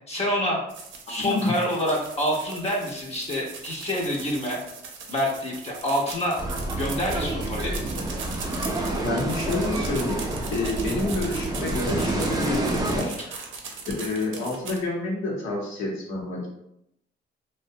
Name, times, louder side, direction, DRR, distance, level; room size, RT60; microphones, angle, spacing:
voice 1, 0.1-0.6 1.1-4.6 5.1-6.4 6.8-7.8, equal, 35° left, -2 dB, 0.6 m, -27 dB
sound 1, 0.7-14.8, right 5 dB, 75° right, 0.5 m, -39 dB
voice 2, 1.2-1.5 9.0-13.4 14.0-16.5, left 2 dB, 80° left, -2 dB, 0.8 m, -29 dB
sound 2, 6.4-13.0, right 2 dB, 20° right, 0.4 m, -28 dB
2.4 x 2.1 x 2.6 m, 0.79 s
cardioid pair, 90°, 20 cm